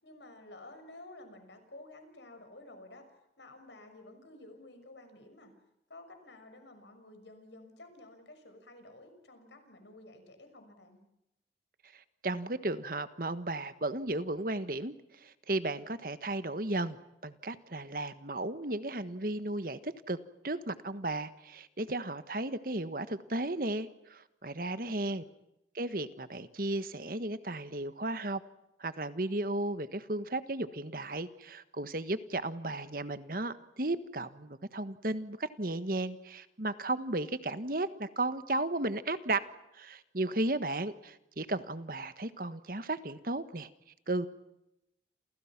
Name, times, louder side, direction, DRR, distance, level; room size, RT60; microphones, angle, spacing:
voice 1, 0.0-3.1 3.4-5.5 5.9-11.0 24.8-25.2, left 2 dB, 80° left, 7 dB, 6.3 m, -52 dB
voice 2, 11.9-14.9 15.2-17.0 17.2-20.2 20.4-25.2 25.7-28.4 28.8-39.5 39.7-43.7 44.1-44.3, right 2 dB, 50° right, 12 dB, 1.4 m, -34 dB
29.5 x 28.5 x 6.0 m, 0.88 s
head